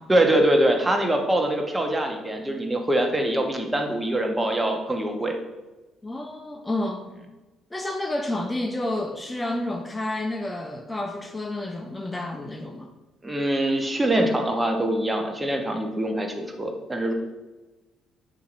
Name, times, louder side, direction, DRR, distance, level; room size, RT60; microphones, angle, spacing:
voice 1, 0.1-5.3 13.2-17.1, right 1 dB, 20° right, 3 dB, 1.0 m, -23 dB
voice 2, 6.0-7.1 7.7-12.9, left 1 dB, 15° left, 3 dB, 0.5 m, -30 dB
6.8 x 2.8 x 2.6 m, 1.1 s
hypercardioid pair, 50°, 0 cm